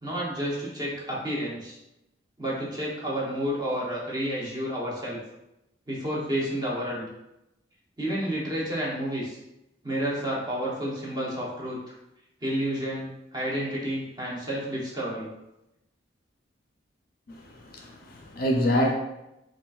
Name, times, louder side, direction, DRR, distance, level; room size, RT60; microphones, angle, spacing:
voice 1, 0.0-1.8 2.4-5.2 5.9-7.1 8.0-9.4 9.8-11.9 12.4-15.3, equal, 25° right, -5 dB, 0.8 m, -30 dB
voice 2, 17.3-18.9, equal, 50° left, 0 dB, 0.5 m, -26 dB
3.8 x 2.4 x 2.3 m, 0.89 s
head